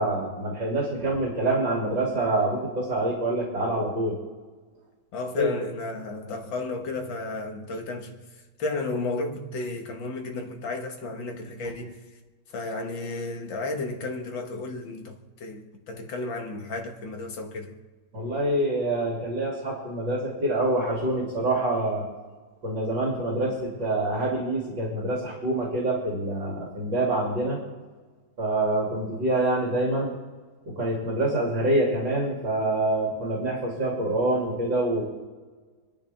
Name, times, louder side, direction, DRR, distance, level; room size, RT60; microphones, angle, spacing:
voice 1, 0.0-4.2 5.4-5.5 18.1-22.0 22.6-27.6 28.4-30.1 30.7-35.0, right 1 dB, 65° right, 3.4 m, -26 dB
voice 2, 5.1-12.0 12.5-17.8 34.1-34.2, left 3 dB, 75° left, 2.2 m, -33 dB
28.0 x 9.6 x 3.5 m
omnidirectional pair, 2.1 m